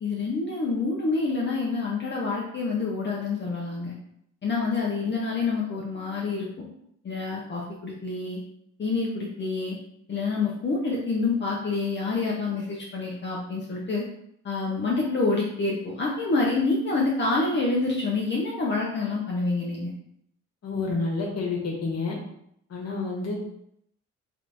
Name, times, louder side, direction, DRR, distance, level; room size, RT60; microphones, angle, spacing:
voice 1, 0.0-3.9 4.4-6.7 7.0-8.4 8.8-9.8 10.1-14.0 14.4-19.9, left 3 dB, 40° left, -3 dB, 0.8 m, -27 dB
voice 2, 20.6-22.1 22.7-23.3, left 3 dB, 55° left, 0 dB, 1.4 m, -29 dB
3.4 x 3.1 x 3.9 m, 0.73 s
cardioid pair, 90°, 30 cm